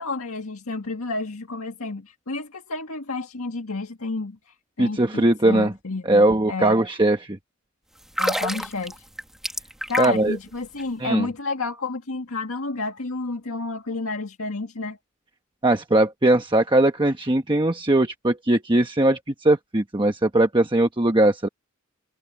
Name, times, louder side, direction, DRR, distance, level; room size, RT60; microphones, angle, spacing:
voice 1, 0.0-6.8 8.2-9.1 9.9-15.0, left 3 dB, 75° left, 1.9 m, -30 dB
voice 2, 4.8-5.7 6.0-7.4 10.0-10.4 11.0-11.3 15.6-21.5, right 1 dB, 20° right, 1.1 m, -20 dB
sound 1, 8.0-10.3 10.6-10.8, equal, ahead, 1.4 m, -28 dB
head